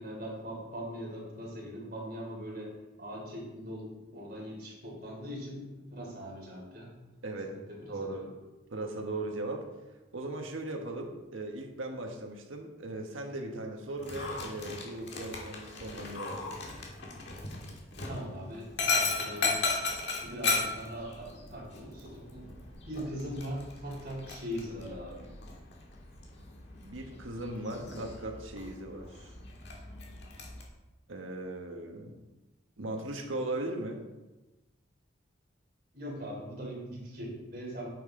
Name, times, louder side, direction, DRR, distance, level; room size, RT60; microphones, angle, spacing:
voice 1, 0.0-2.7 3.0-6.9 7.3-8.3 18.1-19.6 20.2-22.5 22.9-25.3 35.9-37.9, equal, 50° right, -3 dB, 3.4 m, -41 dB
voice 2, 7.2-7.6 7.9-8.2 8.7-9.6 10.1-16.4 26.8-29.3 31.1-32.2 32.8-34.0, right 2 dB, 80° right, 2 dB, 1.4 m, -38 dB
Dog, 14.0-30.6, left 3 dB, 60° left, 1.7 m, -37 dB
9.2 x 7.2 x 3.8 m, 1.1 s
head